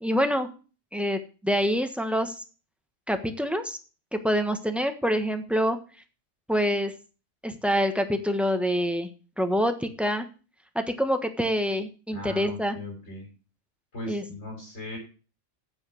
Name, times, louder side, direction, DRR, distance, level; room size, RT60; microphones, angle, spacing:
voice 1, 0.0-0.5 0.9-2.3 3.1-3.8 4.1-5.8 6.5-6.9 7.4-9.1 9.4-10.3 10.7-12.8 14.1-14.2, equal, ahead, 7 dB, 1.1 m, -26 dB
voice 2, 12.1-13.3 13.9-15.0, left 1 dB, 65° left, -2 dB, 5.2 m, -38 dB
8.8 x 7.7 x 6.4 m, 0.35 s
omnidirectional pair, 1.3 m